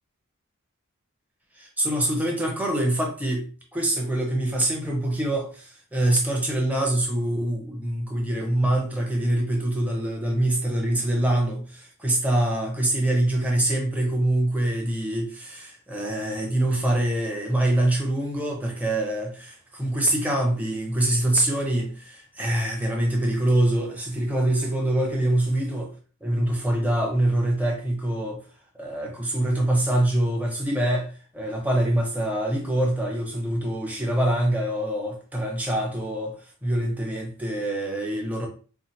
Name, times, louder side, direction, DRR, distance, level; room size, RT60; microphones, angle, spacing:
voice 1, 1.6-25.9 26.2-28.4 28.8-36.4 36.6-38.5, right 1 dB, 5° right, 0.8 m, -25 dB
4.4 x 2.4 x 2.8 m
head